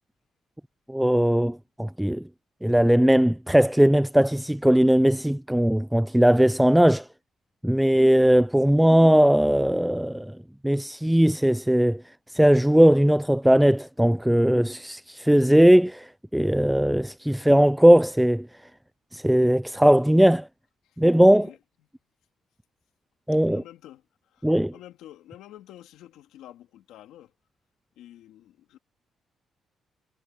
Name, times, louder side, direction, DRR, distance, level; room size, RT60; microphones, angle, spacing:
voice 1, 0.9-2.2 2.6-7.1 7.6-10.4 10.6-12.0 12.3-18.5 19.1-20.5 21.0-21.5 23.3-23.6 24.4-24.7, equal, 5° right, 0.4 m, -19 dB
voice 2, 21.3-21.9 23.4-27.3 28.0-28.8, left 13 dB, 90° left, 2.7 m, -49 dB
cardioid pair, 90°, 0 cm